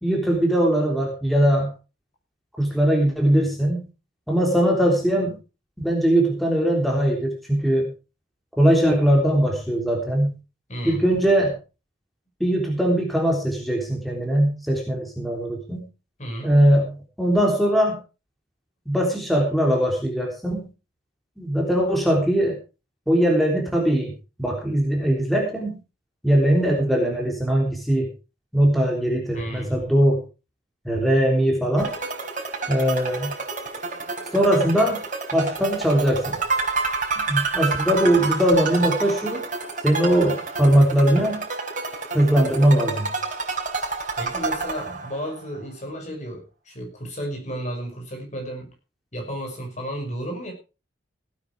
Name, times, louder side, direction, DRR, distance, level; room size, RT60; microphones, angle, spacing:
voice 1, 0.0-1.7 2.6-3.9 4.3-5.3 5.8-7.9 8.6-10.3 10.8-11.5 12.4-15.8 16.4-16.9 17.2-18.0 18.9-20.6 21.4-22.6 23.1-24.1 24.4-25.8 26.2-28.1 28.5-30.2 30.9-31.9 32.7-33.3 34.3-35.0 35.3-36.4 37.3-39.4 39.8-41.4 42.1-43.1, right 1 dB, ahead, 0 dB, 3.5 m, -20 dB
voice 2, 10.7-11.1 16.2-16.5 29.3-29.8 44.2-48.7 49.1-50.5, equal, 40° left, 2 dB, 5.7 m, -33 dB
sound 1, 31.8-45.4, right 4 dB, 45° right, 4.5 m, -29 dB
17.5 x 9.4 x 4.8 m, 0.32 s
head